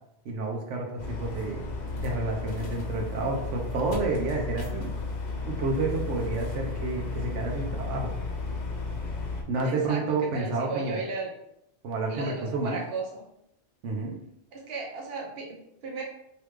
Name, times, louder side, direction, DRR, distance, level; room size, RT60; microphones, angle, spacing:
voice 1, 0.2-1.7 2.0-4.9 5.4-8.1 9.5-11.0 11.8-12.8 13.8-14.2, right 3 dB, 85° right, 0 dB, 1.0 m, -30 dB
sound 1, 1.0-9.4, left 3 dB, 45° left, 0.6 m, -33 dB
voice 2, 9.6-10.0 10.3-11.3 12.1-13.3 14.5-16.0, right 3 dB, 60° right, -1 dB, 1.0 m, -35 dB
3.2 x 2.9 x 3.1 m, 0.77 s
omnidirectional pair, 1.2 m